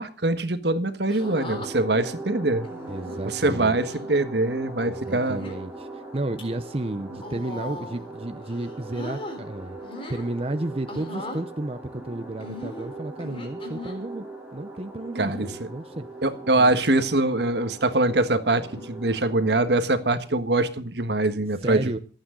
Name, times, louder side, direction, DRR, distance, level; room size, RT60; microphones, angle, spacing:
voice 1, 0.0-2.7 3.2-5.4 15.1-15.5 16.2-22.0, right 2 dB, 65° right, 1.5 m, -23 dB
sound 1, 1.1-1.7 2.6-3.2 3.8-4.1 5.1-5.6 6.2-6.4 7.2-8.1 8.4-9.4 9.8-10.3 10.9-11.4 12.4-14.0 15.2-15.6 16.2-16.6 16.8-16.9 18.5-18.9 20.0-20.3, left 1 dB, 30° left, 3.7 m, -39 dB
sound 2, 1.2-19.8, right 2 dB, 10° right, 3.5 m, -40 dB
voice 2, 2.9-3.8 4.9-9.8 10.1-14.2 14.5-16.1 16.6-16.8 21.6-22.0, right 2 dB, 35° right, 0.8 m, -32 dB
26.0 x 8.9 x 3.9 m
head